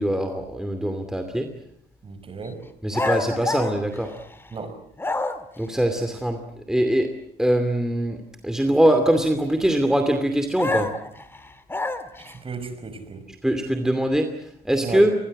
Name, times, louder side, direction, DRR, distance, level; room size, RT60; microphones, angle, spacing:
voice 1, 0.0-1.5 2.8-4.1 5.6-6.4 6.7-7.1 7.4-8.2 8.4-10.9 13.4-15.1, right 1 dB, 5° right, 5 dB, 2.5 m, -22 dB
voice 2, 2.0-2.7 4.5-4.8 12.2-13.2 14.8-15.1, right 4 dB, 35° right, 10 dB, 5.5 m, -34 dB
sound 1, 2.9-4.5 5.0-5.6 10.6-12.4, left 2 dB, 15° left, 2.1 m, -28 dB
26.5 x 21.0 x 7.6 m, 0.71 s
cardioid pair, 110°, 17 cm